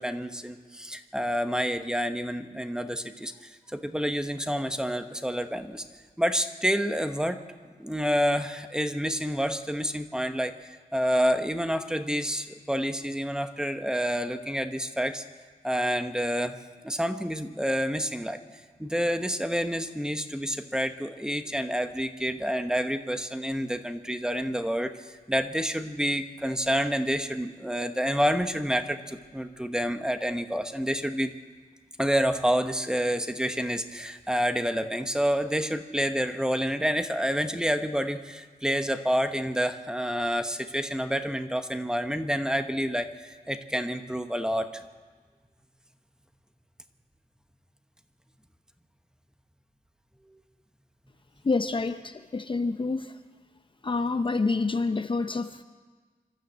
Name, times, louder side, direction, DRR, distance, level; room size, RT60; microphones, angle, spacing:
voice 1, 0.0-5.8 6.2-7.4 7.8-15.2 15.6-16.6 16.8-18.4 18.8-24.9 25.3-31.3 32.0-44.8, equal, 5° right, 8 dB, 1.0 m, -28 dB
voice 2, 51.4-53.2 53.8-55.6, left 3 dB, 35° left, 9 dB, 0.6 m, -28 dB
26.5 x 13.0 x 8.1 m, 1.5 s
wide cardioid pair, 135°, 15 cm